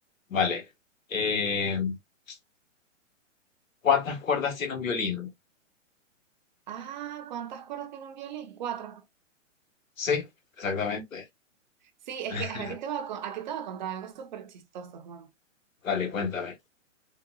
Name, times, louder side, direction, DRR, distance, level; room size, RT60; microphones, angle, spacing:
voice 1, 0.3-0.6 1.1-1.9 2.3-2.4 3.8-5.3 10.0-10.2 10.6-11.2 12.3-12.7 15.8-16.5, left 6 dB, 90° left, 1.3 m, -28 dB
voice 2, 6.7-9.0 12.1-15.3, right 9 dB, 35° right, 0.5 m, -37 dB
3.8 x 2.3 x 2.3 m
hypercardioid pair, 145°, 39 cm